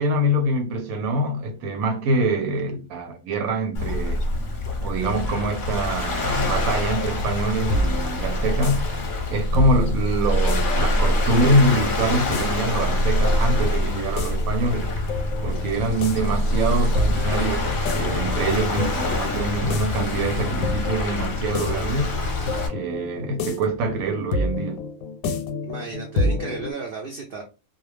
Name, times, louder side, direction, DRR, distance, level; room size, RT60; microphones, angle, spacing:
voice 1, 0.0-4.3 4.8-8.9 9.3-15.0 15.4-22.1 22.7-24.9, right 1 dB, 85° right, 1.0 m, -24 dB
Waves surf, 3.7-22.7, left 1 dB, 45° left, 0.7 m, -25 dB
sound 1, 7.3-26.7, left 2 dB, 80° left, 1.0 m, -30 dB
voice 2, 25.6-27.4, right 4 dB, 65° right, 0.5 m, -34 dB
2.3 x 2.3 x 3.1 m
omnidirectional pair, 1.5 m